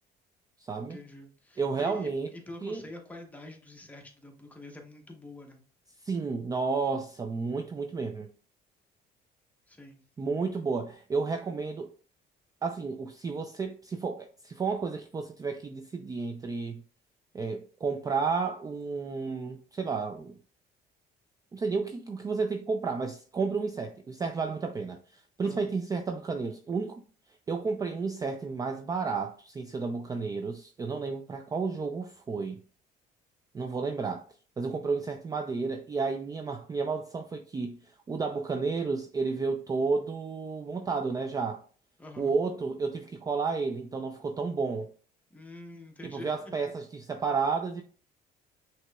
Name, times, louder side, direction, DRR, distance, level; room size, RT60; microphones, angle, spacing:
voice 1, 0.8-5.6 9.7-10.0 25.4-25.7 42.0-42.3 45.3-46.5, left 2 dB, 10° left, 0.9 m, -46 dB
voice 2, 1.6-2.3 2.6-2.8 6.0-8.3 10.2-11.9 12.6-16.8 17.3-20.3 21.5-27.0 27.5-32.6 33.5-34.3 34.6-41.6 42.2-44.9 46.1-47.8, right 4 dB, 20° right, 0.3 m, -32 dB
5.9 x 2.9 x 2.2 m
cardioid pair, 110°, 17 cm